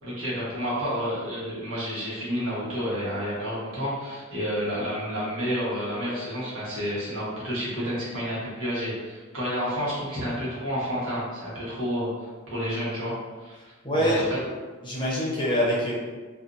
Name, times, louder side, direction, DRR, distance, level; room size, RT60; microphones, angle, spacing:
voice 1, 0.0-12.1 12.5-13.1 13.4-14.4, equal, 80° right, -9 dB, 1.2 m, -30 dB
voice 2, 13.8-14.4 14.8-15.9, equal, 25° left, -6 dB, 0.7 m, -24 dB
2.6 x 2.4 x 2.5 m, 1.3 s
head